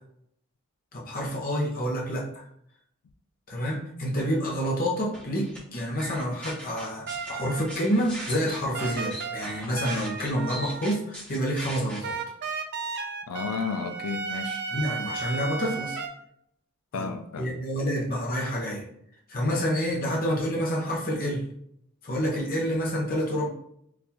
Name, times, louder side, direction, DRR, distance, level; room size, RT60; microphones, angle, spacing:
voice 1, 0.9-2.4 3.5-12.2 14.7-16.0 16.9-17.1 17.4-18.8 19.3-21.4 22.0-23.5, equal, 40° left, -3 dB, 0.8 m, -28 dB
sound 1, 5.1-5.6 6.0-7.3 7.7-12.0, right 1 dB, 5° left, 1.0 m, -39 dB
sound 2, 7.1-8.1 8.7-11.0 12.0-16.1, right 5 dB, 50° right, 0.4 m, -34 dB
voice 2, 13.3-14.6 15.0-15.2 16.9-17.5, left 5 dB, 85° left, 8 dB, 0.4 m, -33 dB
3.9 x 2.5 x 2.8 m, 0.73 s
head